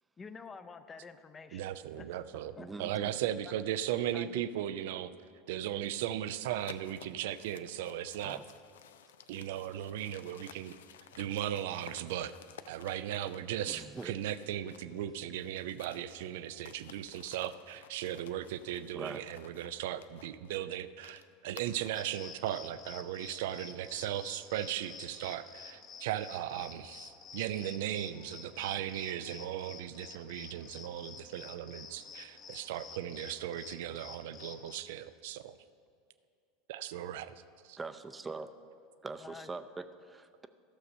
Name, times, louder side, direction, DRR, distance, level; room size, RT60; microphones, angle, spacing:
voice 1, 0.2-1.7 2.0-2.1 2.6-2.7 4.1-4.5 39.2-39.5, left 5 dB, 25° left, 10 dB, 0.6 m, -48 dB
voice 2, 1.5-5.1 5.5-8.4 9.3-10.7 11.2-12.3 12.7-35.6 36.7-37.8, right 11 dB, 65° right, 14 dB, 0.4 m, -37 dB
voice 3, 2.6-3.2 8.2-8.4 13.7-14.2 18.9-19.2 37.8-38.5 39.0-40.5, right 3 dB, 20° right, 10 dB, 0.6 m, -43 dB
sound 1, 6.6-15.0 15.3-22.1, left 9 dB, 75° left, 0.4 m, -55 dB
sound 2, 21.9-34.8, left 5 dB, 40° left, 1.1 m, -50 dB
13.5 x 6.6 x 5.4 m, 2.4 s
hypercardioid pair, 80°, 0 cm